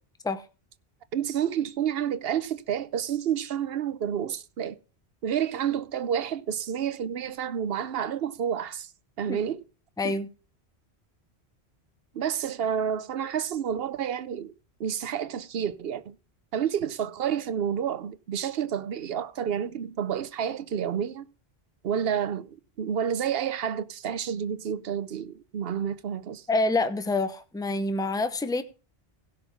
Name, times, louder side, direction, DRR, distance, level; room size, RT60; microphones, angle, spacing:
voice 1, 1.1-4.8 5.2-8.9 9.2-9.6 12.1-14.5 14.8-16.2 16.5-21.3 21.8-26.4, right 8 dB, 70° right, 0.9 m, -29 dB
voice 2, 10.0-10.3 26.5-28.6, left 2 dB, 5° left, 0.8 m, -27 dB
16.0 x 5.5 x 5.8 m
omnidirectional pair, 1.1 m